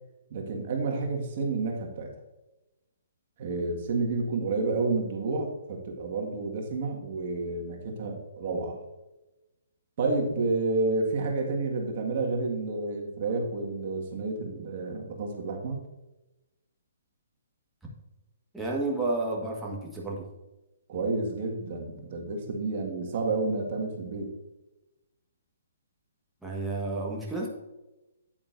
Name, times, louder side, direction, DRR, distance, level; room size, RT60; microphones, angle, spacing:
voice 1, 0.3-2.1 3.4-8.8 10.0-15.8 20.9-24.3, right 3 dB, 50° right, 1 dB, 1.7 m, -30 dB
voice 2, 18.5-20.2 26.4-27.5, right 2 dB, ahead, -5 dB, 1.5 m, -31 dB
9.0 x 8.6 x 2.6 m, 1.0 s
hypercardioid pair, 140°, 0 cm